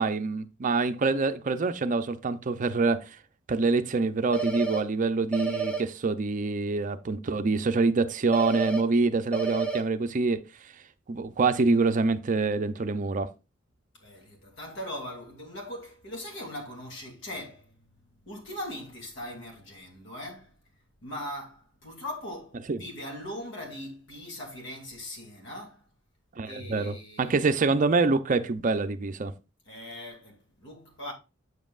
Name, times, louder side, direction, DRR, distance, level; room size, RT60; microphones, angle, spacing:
voice 1, 0.0-3.2 3.5-10.4 11.1-13.3 22.7-22.8 26.4-29.3, right 3 dB, 40° right, 0.5 m, -26 dB
sound 1, 4.3-4.8 5.3-5.8 8.3-8.8 9.3-9.8, right 6 dB, 5° left, 0.8 m, -29 dB
voice 2, 13.9-20.5 21.0-25.8 26.5-27.5 29.7-31.1, left 1 dB, 65° left, 2.6 m, -40 dB
8.0 x 7.3 x 2.4 m
head